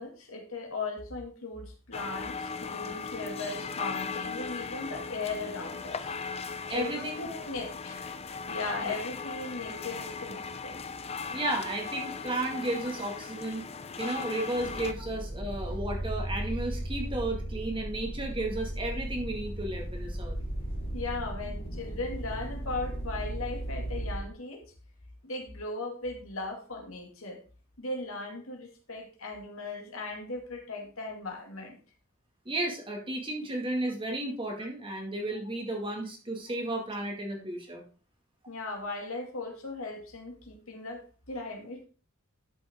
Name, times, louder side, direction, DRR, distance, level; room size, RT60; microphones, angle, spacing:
voice 1, 0.0-6.1 6.7-8.1 8.5-10.8 15.0-15.1 20.9-24.7 25.2-27.4 27.8-31.8 38.5-41.8, left 3 dB, 70° left, 2 dB, 2.5 m, -38 dB
sound 1, 1.9-14.9, left 5 dB, 30° left, 0.5 m, -38 dB
voice 2, 6.7-7.3 8.8-9.0 11.3-13.7 14.0-20.4 32.5-37.8, right 1 dB, 25° right, 2 dB, 2.1 m, -33 dB
sound 2, 14.6-24.2, right 1 dB, 45° left, 2.9 m, -36 dB
11.5 x 6.0 x 3.7 m, 0.36 s
head